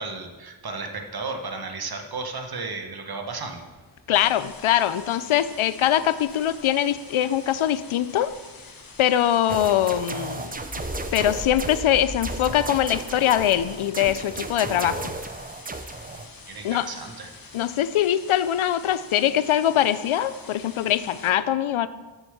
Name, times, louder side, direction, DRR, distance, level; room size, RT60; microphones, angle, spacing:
voice 1, 0.0-3.7 16.1-16.2 16.5-17.3, right 3 dB, 50° right, 4 dB, 1.2 m, -34 dB
sound 1, 3.3-17.8, left 2 dB, 20° left, 2.3 m, -44 dB
voice 2, 4.1-8.3 9.0-10.5 11.1-15.0 16.6-16.9 17.5-21.9, left 11 dB, 85° left, 14 dB, 0.6 m, -22 dB
sound 2, 4.1-21.3, left 4 dB, 45° left, 1.1 m, -46 dB
sound 3, 9.5-11.9 12.2-16.3, right 3 dB, 20° right, 0.5 m, -34 dB
7.2 x 6.6 x 7.3 m, 1.2 s
wide cardioid pair, 130°, 47 cm